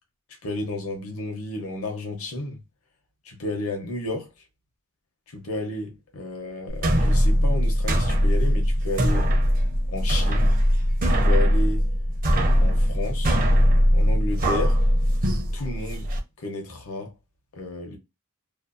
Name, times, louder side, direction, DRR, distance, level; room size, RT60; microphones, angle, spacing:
voice 1, 0.4-2.6 3.2-4.3 5.3-9.3 9.9-10.5 11.0-11.9 12.6-13.4 13.9-14.8 15.5-16.1 16.4-17.1 17.5-18.0, left 2 dB, 70° left, 0.8 m, -32 dB
sound 1, 6.7-16.2, equal, 40° right, 0.5 m, -21 dB
2.6 x 2.2 x 2.5 m
head